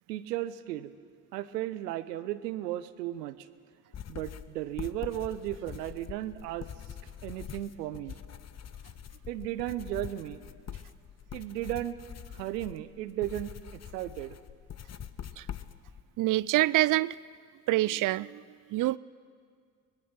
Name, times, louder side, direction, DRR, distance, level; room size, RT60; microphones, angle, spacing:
voice 1, 0.1-0.9 1.3-3.4 4.1-6.7 7.2-8.1 9.3-10.4 11.3-12.0 12.3-14.4 18.8-18.9, right 14 dB, 80° right, 15 dB, 0.8 m, -35 dB
sound 1, 3.9-16.0, left 9 dB, 35° left, 0.9 m, -44 dB
voice 2, 16.2-17.1 17.7-18.4 18.7-19.0, right 17 dB, 45° right, 22 dB, 0.4 m, -26 dB
23.5 x 20.0 x 5.8 m, 2.1 s
figure-of-eight pair, 50°, 48 cm